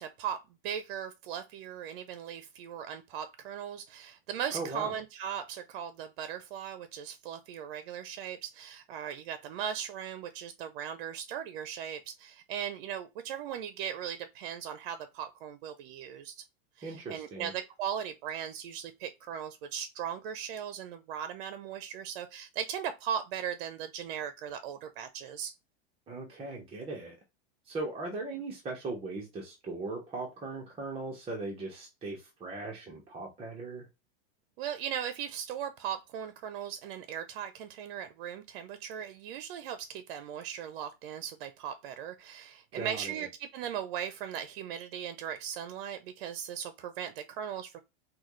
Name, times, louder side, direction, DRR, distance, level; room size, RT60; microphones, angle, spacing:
voice 1, 0.0-16.4 16.8-25.5 34.6-47.8, right 9 dB, 60° right, 0.7 m, -38 dB
voice 2, 4.5-4.9 16.8-17.5 26.1-27.2 27.7-33.9 42.7-43.3, right 3 dB, 20° right, 1.1 m, -39 dB
6.1 x 2.4 x 3.1 m
supercardioid pair, 145°, 30 cm